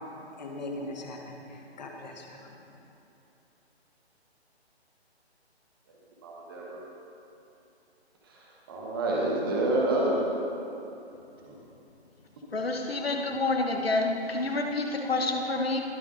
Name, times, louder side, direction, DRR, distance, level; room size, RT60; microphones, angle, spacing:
voice 1, 0.4-2.5, left 2 dB, 40° left, 1 dB, 1.3 m, -40 dB
voice 2, 6.2-6.8 8.7-10.2 11.4-11.6, right 2 dB, 20° right, -4 dB, 1.1 m, -28 dB
voice 3, 12.5-15.8, left 2 dB, 65° left, 3 dB, 1.1 m, -28 dB
21.0 x 7.0 x 2.6 m, 2.9 s
figure-of-eight pair, 145°, 33 cm